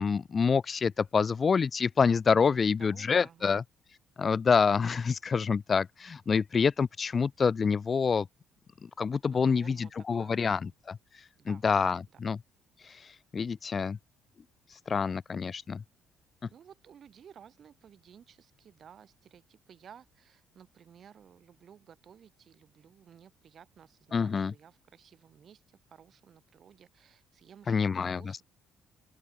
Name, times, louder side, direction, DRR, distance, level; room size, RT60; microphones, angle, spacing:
voice 1, 0.0-3.6 4.2-8.3 8.8-11.0 11.5-12.4 12.8-13.0 13.3-14.0 14.9-15.8 24.1-24.5 27.7-28.2, left 5 dB, 35° left, 0.5 m, -27 dB
voice 2, 2.4-3.6 9.3-9.9 10.2-10.7 11.4-12.2 16.5-28.4, right 8 dB, 45° right, 4.9 m, -55 dB
open air
figure-of-eight pair, 45°, 0 cm